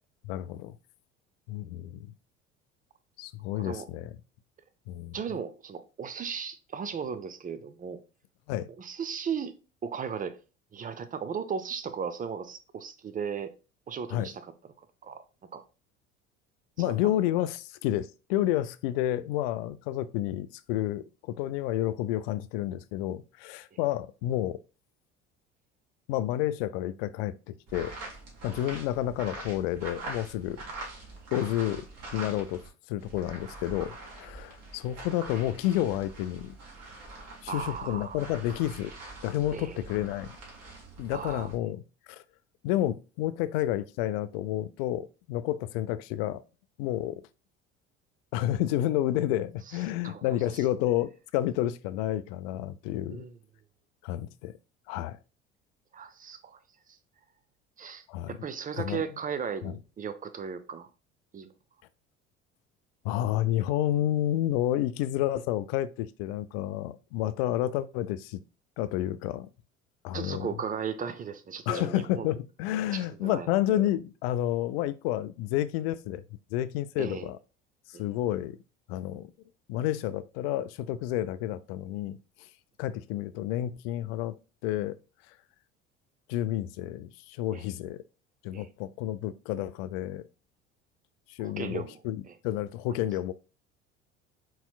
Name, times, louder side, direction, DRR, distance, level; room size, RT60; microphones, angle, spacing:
voice 1, 0.2-0.8 1.5-2.1 3.2-4.2 4.9-5.2 8.5-8.7 14.1-14.3 16.8-24.6 26.1-28.0 28.4-30.6 31.3-31.8 32.1-32.6 32.9-36.6 37.4-38.9 39.2-40.3 41.0-41.8 42.1-42.2 42.6-46.4 46.8-47.2 48.3-53.3 54.0-54.5 54.9-55.2 58.1-58.4 58.8-59.0 59.6-59.7 63.0-68.4 68.8-69.5 70.0-70.5 71.7-76.2 76.5-77.4 77.9-78.6 78.9-79.3 79.7-82.2 82.8-84.4 84.6-85.0 86.3-88.0 88.4-90.3 91.3-93.3, left 13 dB, 60° left, 0.4 m, -30 dB
voice 2, 5.1-8.0 8.8-9.5 9.8-10.4 10.7-13.5 13.9-14.4 15.0-15.2 15.5-15.6 16.8-16.9 37.5-38.2 39.5-39.8 41.1-41.5 50.0-50.4 53.1-53.3 55.9-56.6 57.8-60.9 61.3-61.5 70.1-72.4 72.9-73.5 77.0-77.3 77.9-78.0 87.5-87.6 88.5-88.7 91.4-92.0 92.3-92.4, right 6 dB, 25° right, 0.5 m, -36 dB
sound 1, 27.7-32.7 33.0-41.6, right 2 dB, 45° right, 1.9 m, -44 dB
4.3 x 4.2 x 2.2 m
figure-of-eight pair, 65°, 35 cm